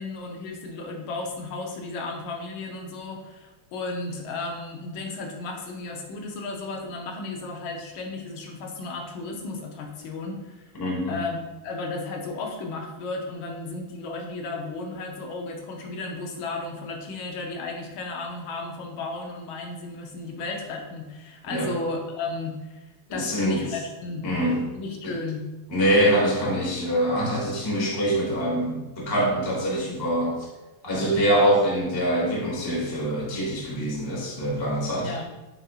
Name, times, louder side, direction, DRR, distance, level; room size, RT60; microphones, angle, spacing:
voice 1, 0.0-10.7 11.1-22.9 23.1-24.3 24.7-25.5 35.0-35.3, left 3 dB, 75° left, 2 dB, 1.4 m, -34 dB
voice 2, 10.8-11.2 21.5-21.7 23.1-23.6 24.2-24.7 25.0-25.2 25.7-30.4 30.8-35.1, equal, 30° left, -4 dB, 0.4 m, -24 dB
7.6 x 2.6 x 2.3 m, 1.1 s
omnidirectional pair, 2.4 m